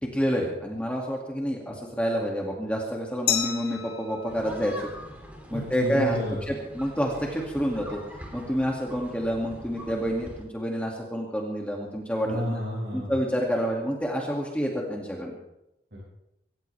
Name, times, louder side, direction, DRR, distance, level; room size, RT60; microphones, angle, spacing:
voice 1, 0.0-4.7 5.5-6.2 6.5-8.0 8.3-12.6 12.9-15.3, equal, 5° left, -1 dB, 2.3 m, -28 dB
Glass, 3.3-6.0, left 10 dB, 60° left, 2.4 m, -33 dB
sound 1, 4.3-10.5, equal, 10° right, 2.8 m, -43 dB
voice 2, 5.5-6.4 12.2-13.1 15.9-16.0, equal, 60° right, -8 dB, 7.2 m, -31 dB
26.0 x 15.0 x 3.5 m, 0.87 s
head